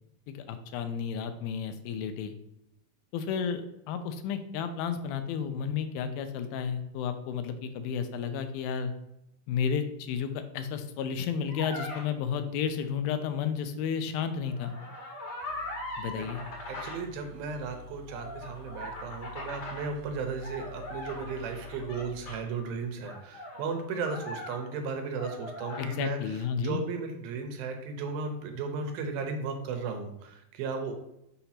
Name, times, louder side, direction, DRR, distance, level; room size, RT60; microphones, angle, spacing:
voice 1, 0.3-2.3 3.1-8.9 9.5-14.8 16.0-16.4 25.8-26.8, left 7 dB, 85° left, 9 dB, 2.5 m, -32 dB
sound 1, 11.5-12.0 14.4-17.0 18.1-19.9 20.4-22.4 23.0-24.9 25.2-25.9, left 1 dB, 55° left, 1.1 m, -40 dB
sound 2, 15.4-23.2, left 2 dB, 60° right, 1.3 m, -49 dB
voice 2, 16.7-30.9, right 4 dB, 85° right, 5 dB, 2.7 m, -35 dB
6.7 x 2.9 x 5.7 m, 0.82 s
omnidirectional pair, 4.2 m